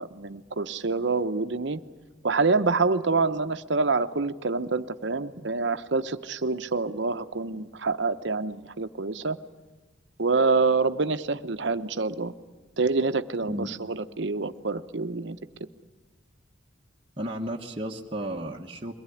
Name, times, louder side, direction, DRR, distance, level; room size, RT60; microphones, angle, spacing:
voice 1, 0.0-1.8 2.2-9.4 10.2-12.3 12.8-15.4, right 4 dB, 65° right, 11 dB, 0.9 m, -26 dB
voice 2, 17.2-18.9, equal, 25° right, -2 dB, 1.2 m, -33 dB
23.0 x 18.5 x 9.9 m, 1.1 s
head